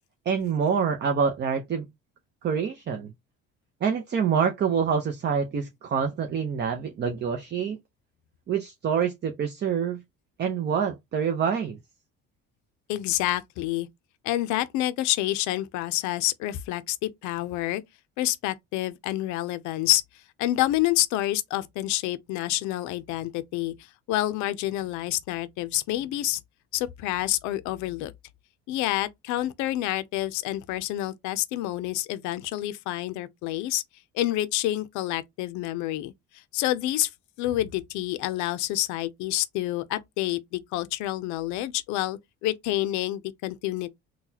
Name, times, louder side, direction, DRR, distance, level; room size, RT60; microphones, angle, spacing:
voice 1, 0.3-1.8 2.4-3.1 3.8-7.8 8.5-10.0 10.4-11.8, right 7 dB, 35° right, 0.7 m, -26 dB
voice 2, 12.9-13.9 14.2-17.8 18.2-20.0 20.4-23.7 24.1-26.4 26.7-28.1 28.7-33.8 34.1-37.1 37.4-43.9, left 15 dB, 80° left, 0.6 m, -28 dB
3.9 x 2.3 x 2.8 m
cardioid pair, 105°, 29 cm